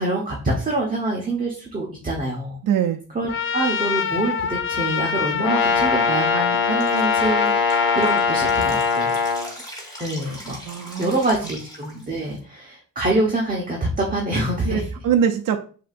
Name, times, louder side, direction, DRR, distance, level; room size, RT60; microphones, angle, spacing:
voice 1, 0.0-2.6 3.1-9.2 10.0-10.6 11.0-14.9, right 2 dB, 25° right, -2 dB, 1.1 m, -25 dB
voice 2, 2.6-3.0 10.7-11.1 14.7-15.6, right 8 dB, 65° right, 5 dB, 0.5 m, -22 dB
Trumpet, 3.3-9.0, left 6 dB, 40° left, 0.4 m, -26 dB
Brass instrument, 5.4-9.5, left 5 dB, 85° left, 0.9 m, -21 dB
Drip, 6.8-12.4, equal, 10° left, 1.8 m, -40 dB
6.8 x 2.8 x 2.5 m, 0.40 s
cardioid pair, 95°, 35 cm